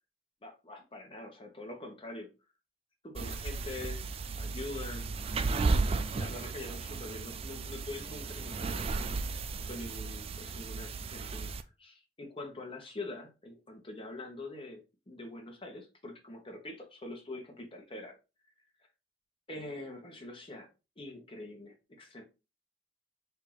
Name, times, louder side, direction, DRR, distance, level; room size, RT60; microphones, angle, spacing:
voice 1, 0.4-2.3 3.0-5.1 6.1-9.2 9.6-11.5 11.8-18.2 19.5-20.7 21.0-22.2, left 2 dB, 30° left, 2 dB, 1.2 m, -44 dB
sound 1, 3.2-11.6, right 3 dB, 35° right, 0.4 m, -34 dB
4.5 x 2.8 x 3.9 m, 0.29 s
head